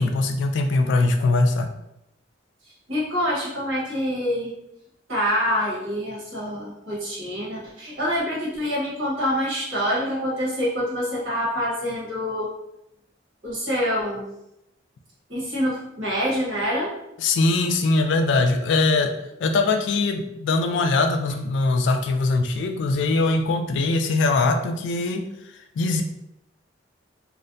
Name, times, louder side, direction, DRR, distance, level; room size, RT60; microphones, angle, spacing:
voice 1, 0.0-1.7 17.2-19.2 19.4-25.3 25.8-26.0, left 3 dB, 65° left, 5 dB, 0.3 m, -21 dB
voice 2, 2.9-4.5 5.1-12.5 13.4-14.2 15.3-16.9, equal, 80° right, -6 dB, 1.1 m, -26 dB
2.4 x 2.1 x 2.5 m, 0.83 s
head